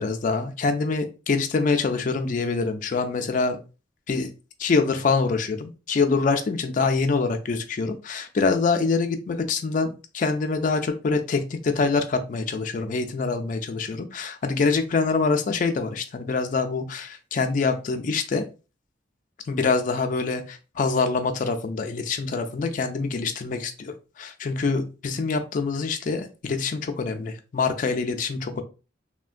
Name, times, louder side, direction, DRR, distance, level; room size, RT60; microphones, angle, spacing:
voice 1, 0.0-3.6 4.1-4.3 4.6-18.4 19.5-28.6, left 4 dB, 45° left, 6 dB, 0.3 m, -25 dB
3.4 x 2.1 x 2.4 m, 0.32 s
head